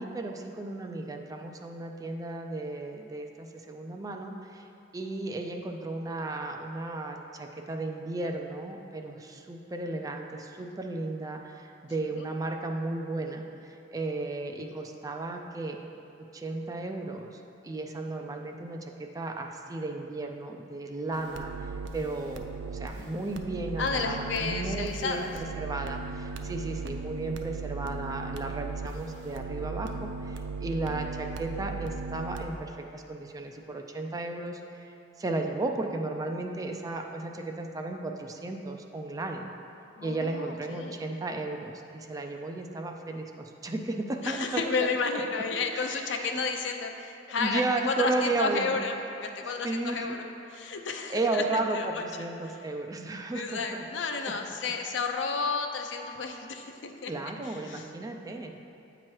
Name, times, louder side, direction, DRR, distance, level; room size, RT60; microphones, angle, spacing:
voice 1, 0.0-4.7 4.9-15.8 16.3-21.5 21.9-34.9 35.2-39.5 40.0-44.9 45.7-46.5 47.4-48.8 49.6-50.2 51.1-53.6 57.1-58.6, right 2 dB, 20° right, 3 dB, 0.3 m, -34 dB
sound 1, 21.1-32.5, right 4 dB, 85° right, 0.4 m, -37 dB
voice 2, 23.8-25.3 39.9-41.0 44.2-50.2 50.5-51.4 51.7-52.3 53.3-57.1 57.4-57.8, left 4 dB, 75° left, 4 dB, 0.5 m, -32 dB
8.5 x 2.9 x 4.6 m, 2.7 s
head